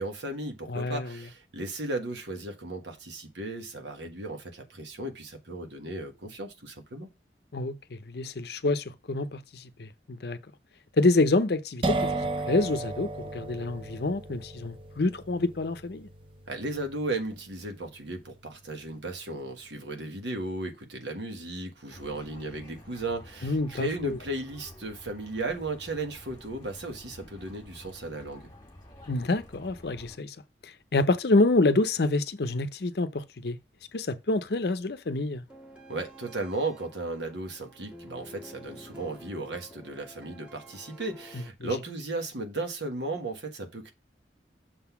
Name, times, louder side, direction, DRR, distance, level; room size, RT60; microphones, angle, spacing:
voice 1, 0.0-7.1 16.5-28.4 35.9-43.9, right 2 dB, 75° right, 1.4 m, -35 dB
voice 2, 0.7-1.2 7.5-10.4 11.0-12.0 12.5-16.1 23.4-24.2 29.1-30.4 30.9-33.6 33.9-35.4 41.3-41.7, left 2 dB, 60° left, 0.6 m, -27 dB
sound 1, 11.8-19.4, right 2 dB, 30° right, 0.5 m, -35 dB
sound 2, 21.9-30.2, left 1 dB, 20° left, 1.7 m, -50 dB
sound 3, 35.5-41.5, equal, 5° right, 1.6 m, -49 dB
6.6 x 3.9 x 5.7 m
head